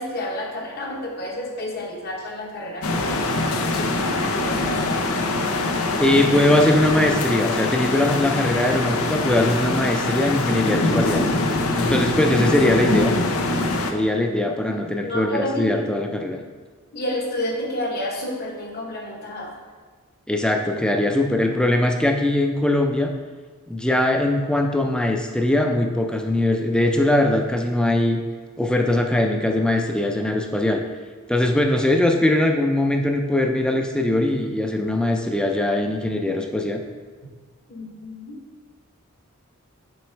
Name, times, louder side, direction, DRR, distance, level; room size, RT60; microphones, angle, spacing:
voice 1, 0.0-5.1 15.0-15.8 16.9-19.6 37.7-38.3, left 1 dB, 45° left, 0 dB, 1.1 m, -30 dB
sound 1, 2.8-13.9, left 2 dB, 80° left, 0.6 m, -23 dB
voice 2, 6.0-11.3 11.8-13.1 13.9-16.4 20.3-23.1 23.7-28.2 28.6-30.8 31.3-36.8, left 1 dB, 5° left, 3 dB, 0.4 m, -21 dB
6.2 x 4.1 x 4.5 m, 1.5 s
head